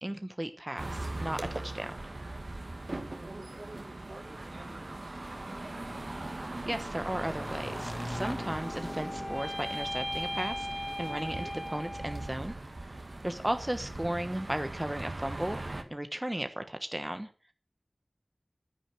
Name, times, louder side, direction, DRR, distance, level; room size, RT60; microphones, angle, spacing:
voice 1, 0.0-1.9 6.7-12.6 12.8-13.0 13.2-15.6 15.9-17.5, right 1 dB, 20° right, 8 dB, 1.2 m, -35 dB
sound 1, 0.8-15.8, right 2 dB, 65° right, 2.1 m, -40 dB
voice 2, 3.1-5.8, right 2 dB, 85° right, 3 dB, 5.6 m, -56 dB
Motorcycle / Engine, 5.3-12.6, left 1 dB, 45° left, 2.1 m, -44 dB
sound 2, 8.2-12.5, equal, 15° left, 1.9 m, -38 dB
10.5 x 10.0 x 6.2 m, 0.36 s
wide cardioid pair, 55°, 0 cm